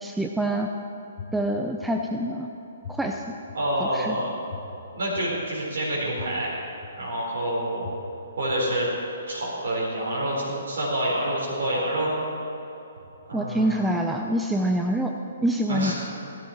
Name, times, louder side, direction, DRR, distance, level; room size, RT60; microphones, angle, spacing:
voice 1, 0.0-0.7 1.3-2.5 2.9-3.2 3.8-4.2 13.3-15.1 15.4-15.9, right 1 dB, 5° right, 2 dB, 0.5 m, -26 dB
sound 1, 1.2-1.3 1.8-1.9 2.8-2.9 3.5-3.6 4.5-4.6 5.1-5.2 6.2-6.3 6.8-6.9 7.8-7.9 8.5-8.6, left 7 dB, 40° left, 1.3 m, -37 dB
voice 2, 3.5-4.4 4.9-6.5 6.9-7.9 8.4-8.9 9.3-12.1 13.3-14.0 15.7-15.9, right 1 dB, 55° right, -6 dB, 3.8 m, -27 dB
17.0 x 12.0 x 4.5 m, 2.9 s
figure-of-eight pair, 125°, 0 cm